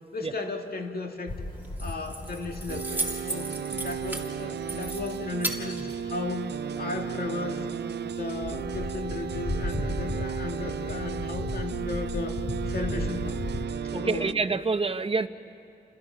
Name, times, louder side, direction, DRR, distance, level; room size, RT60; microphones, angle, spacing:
voice 1, 0.1-1.3 1.8-3.0 3.3-6.5 6.8-7.7 8.0-12.4 12.7-13.4 13.9-14.4, left 3 dB, 65° left, 3 dB, 2.2 m, -35 dB
sound 1, 1.3-13.6, left 1 dB, 30° left, 2.8 m, -37 dB
Keys jangling, 1.5-6.6, right 1 dB, 10° right, 2.4 m, -36 dB
sound 2, 2.7-14.3, right 7 dB, 75° right, 0.5 m, -34 dB
voice 2, 13.9-15.3, right 4 dB, 35° right, 10 dB, 0.8 m, -27 dB
29.5 x 26.5 x 5.8 m, 2.7 s
wide cardioid pair, 110°, 17 cm